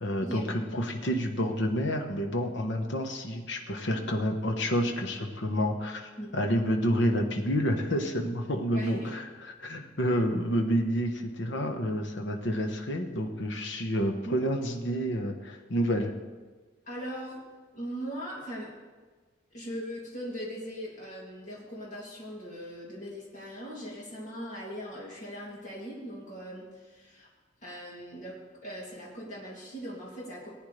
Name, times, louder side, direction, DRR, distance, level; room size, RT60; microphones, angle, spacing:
voice 1, 0.0-9.3 9.6-16.1, equal, 65° left, 3 dB, 1.1 m, -29 dB
voice 2, 8.7-9.2 14.2-14.4 16.8-17.4 17.7-18.7 19.5-27.3 27.6-30.5, equal, 40° left, -5 dB, 2.7 m, -40 dB
19.0 x 9.3 x 3.3 m, 1.3 s
head